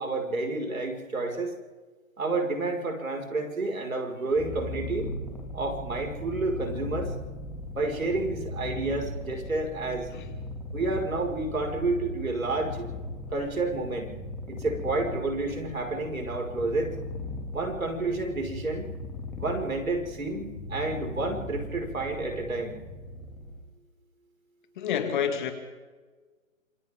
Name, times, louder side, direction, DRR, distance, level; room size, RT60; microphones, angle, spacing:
voice 1, 0.0-1.5 2.2-5.1 5.5-7.1 7.7-10.1 10.7-12.9 13.3-14.1 14.5-16.9 17.5-18.9 19.4-22.8, right 3 dB, 90° right, 3 dB, 5.4 m, -30 dB
Purr, 4.3-23.6, left 2 dB, 5° left, 2.3 m, -38 dB
voice 2, 24.8-25.5, left 8 dB, 35° left, 6 dB, 2.5 m, -28 dB
27.0 x 25.5 x 3.7 m, 1.4 s
hypercardioid pair, 150°, 40 cm